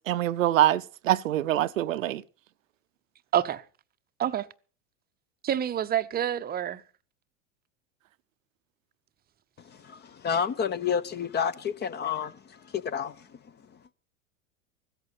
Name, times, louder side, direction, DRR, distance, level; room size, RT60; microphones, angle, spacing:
voice 1, 0.1-2.2, right 14 dB, 75° right, 0.6 m, -24 dB
voice 2, 3.3-3.6 4.2-4.5 5.4-6.8, right 10 dB, 25° right, 0.7 m, -27 dB
voice 3, 10.2-12.3 12.7-13.1, left 7 dB, 25° left, 0.8 m, -28 dB
16.0 x 13.5 x 4.1 m
hypercardioid pair, 85°, 40 cm